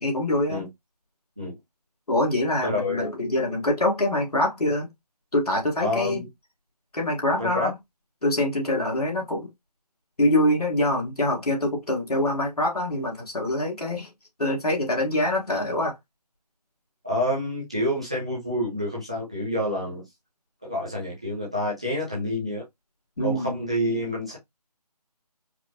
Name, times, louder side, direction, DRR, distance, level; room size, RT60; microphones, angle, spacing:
voice 1, 0.0-0.6 2.1-4.9 5.3-6.2 6.9-7.7 8.2-9.5 10.2-14.1 14.4-16.0 23.2-23.6, left 1 dB, 70° left, 2.1 m, -24 dB
voice 2, 2.6-3.1 5.8-6.3 7.4-7.7 17.0-20.0 20.6-22.6 23.2-24.4, left 1 dB, 10° right, 0.5 m, -28 dB
4.8 x 2.4 x 3.0 m
figure-of-eight pair, 160°, 21 cm